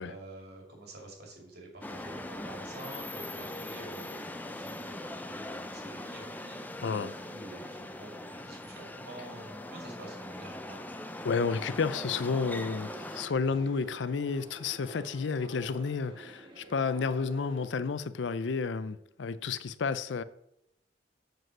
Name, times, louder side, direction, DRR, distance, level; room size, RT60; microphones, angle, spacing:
voice 1, 0.0-10.8, right 2 dB, 60° right, 2.7 m, -48 dB
sound 1, 1.8-13.3, left 1 dB, 10° left, 0.5 m, -41 dB
voice 2, 6.8-7.2 11.2-20.2, left 5 dB, 80° left, 0.5 m, -31 dB
sound 2, 11.6-17.7, right 2 dB, 30° right, 1.8 m, -50 dB
7.7 x 5.1 x 6.2 m
head